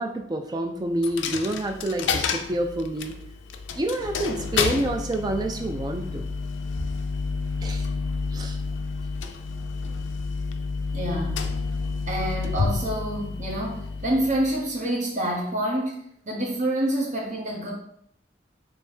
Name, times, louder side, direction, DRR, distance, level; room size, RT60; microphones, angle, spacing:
voice 1, 0.0-3.1 3.8-6.3 7.6-7.8 8.3-8.6, right 1 dB, 20° right, 4 dB, 0.4 m, -28 dB
Coin (dropping), 1.0-14.8, left 4 dB, 85° left, 0.4 m, -30 dB
voice 2, 10.9-11.5 12.1-16.0 16.3-17.7, right 1 dB, 40° right, -2 dB, 1.0 m, -27 dB
3.4 x 3.1 x 4.4 m, 0.71 s
head